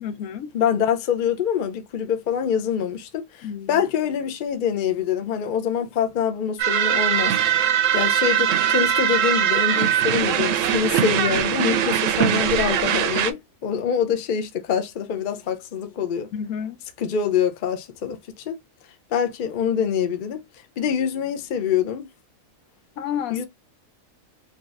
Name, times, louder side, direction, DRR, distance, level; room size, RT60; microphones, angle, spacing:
voice 1, 0.0-0.5 3.4-3.7 16.3-16.8 23.0-23.5, left 8 dB, 90° left, 1.1 m, -30 dB
voice 2, 0.5-7.4 7.9-16.3 17.0-18.2 18.5-18.6 19.1-20.4 20.8-22.1 23.3-23.4, left 8 dB, 50° left, 0.6 m, -25 dB
sound 1, 6.6-13.3, right 9 dB, 70° right, 0.9 m, -21 dB
3.9 x 3.0 x 2.4 m
omnidirectional pair, 1.5 m